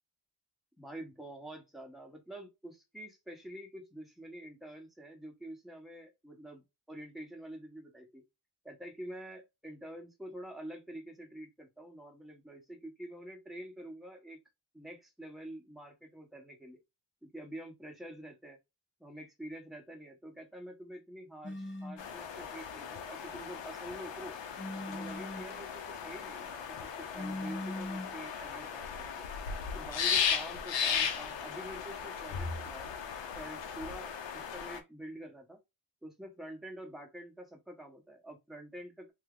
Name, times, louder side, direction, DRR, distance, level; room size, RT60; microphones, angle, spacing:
voice 1, 0.8-6.6 6.9-8.2 8.6-14.4 14.7-16.8 17.2-18.6 19.0-24.4 24.9-29.1 29.7-33.0 33.3-35.6 36.0-39.1, right 1 dB, ahead, 1.1 m, -47 dB
sound 1, 21.4-22.1 24.6-25.5 27.1-28.2, left 1 dB, 25° left, 0.8 m, -40 dB
sound 2, 22.0-34.8, left 7 dB, 75° left, 0.7 m, -36 dB
2.7 x 2.3 x 3.7 m
cardioid pair, 80°, 44 cm